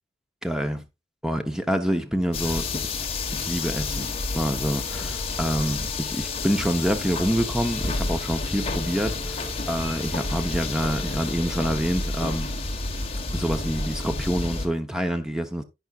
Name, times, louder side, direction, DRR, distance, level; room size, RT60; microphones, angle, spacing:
voice 1, 0.4-0.8 1.2-2.9 3.3-4.1 4.3-12.5 13.3-15.6, equal, 5° right, 1.0 m, -27 dB
sound 1, 2.3-14.7, left 3 dB, 35° left, 1.5 m, -30 dB
10.5 x 8.9 x 2.5 m
head